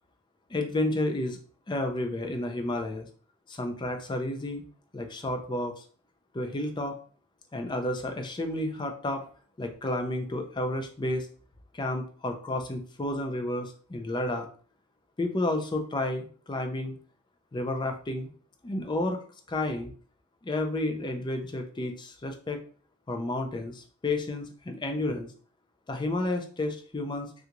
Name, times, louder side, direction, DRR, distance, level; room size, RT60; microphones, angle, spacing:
voice 1, 0.5-1.4 1.7-3.1 3.5-4.6 4.9-5.8 6.3-7.0 7.5-9.3 9.6-11.3 11.7-14.5 15.2-16.9 17.5-18.3 18.6-19.2 19.5-19.9 20.4-22.6 23.1-25.3 25.9-27.3, left 1 dB, 20° left, 5 dB, 0.4 m, -31 dB
3.7 x 2.3 x 2.9 m, 0.43 s
head